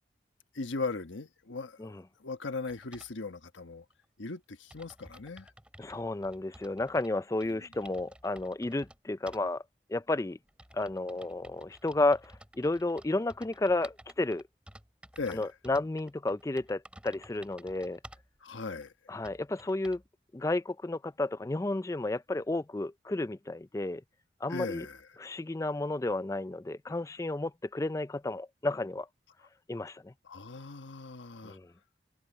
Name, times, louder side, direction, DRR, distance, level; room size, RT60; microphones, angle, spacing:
voice 1, 0.5-1.9 2.2-3.8 4.2-5.5 7.5-7.7 15.2-15.5 18.4-18.9 24.5-25.0 30.2-31.6, left 3 dB, 90° left, 1.3 m, -38 dB
sound 1, 2.7-3.1 4.0-4.1 4.4-4.5 4.7-7.1 7.4-9.0 9.3-9.4 10.2-18.3 18.8-18.9 19.2-20.1, right 1 dB, 5° right, 2.5 m, -54 dB
voice 2, 5.8-9.6 9.9-10.4 10.7-14.4 15.3-18.0 19.1-20.0 20.3-24.0 24.4-24.9 25.2-29.1 29.7-30.1 31.4-31.7, left 2 dB, 15° left, 0.3 m, -32 dB
head